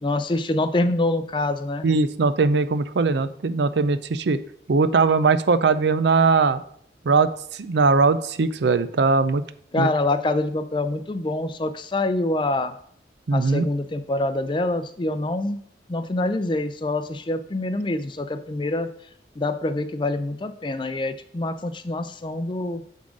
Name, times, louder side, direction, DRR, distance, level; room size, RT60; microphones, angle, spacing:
voice 1, 0.0-1.9 9.7-12.7 13.3-15.6 15.9-18.9 19.4-22.8, left 2 dB, 25° left, 10 dB, 0.4 m, -25 dB
voice 2, 1.8-4.4 4.7-6.6 7.1-9.4 9.8-9.9 13.3-13.7, right 4 dB, 70° right, 13 dB, 0.5 m, -20 dB
7.6 x 3.7 x 6.2 m, 0.62 s
head